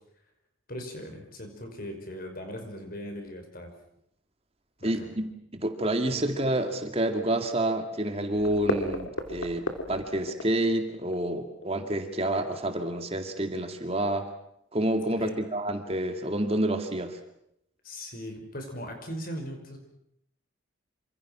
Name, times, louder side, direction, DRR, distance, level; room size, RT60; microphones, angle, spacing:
voice 1, 0.7-3.7 4.8-5.1 6.1-6.2 15.2-15.5 17.8-19.8, equal, 45° left, 5 dB, 5.5 m, -39 dB
voice 2, 4.8-5.3 5.5-14.3 14.7-17.2, right 1 dB, 30° right, 6 dB, 2.1 m, -28 dB
sound 1, 8.4-13.0 13.3-13.4 13.8-13.9 14.2-14.3, left 1 dB, 70° left, 2.9 m, -33 dB
27.5 x 26.0 x 6.1 m, 0.75 s
head